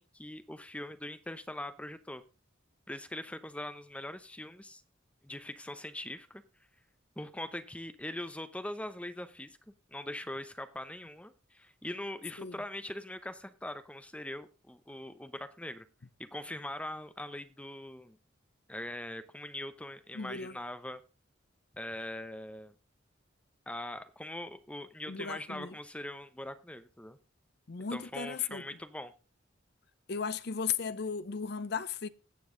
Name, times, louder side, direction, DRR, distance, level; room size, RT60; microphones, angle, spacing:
voice 1, 0.0-2.2 2.9-4.8 5.2-6.4 7.2-9.6 9.9-15.8 16.2-18.2 18.7-21.0 21.7-22.7 23.7-27.2 27.9-29.1, left 1 dB, 5° left, 0.8 m, -42 dB
voice 2, 20.1-20.6 25.1-25.7 27.7-28.6 30.1-32.1, left 6 dB, 55° left, 0.6 m, -36 dB
16.5 x 7.1 x 3.8 m
head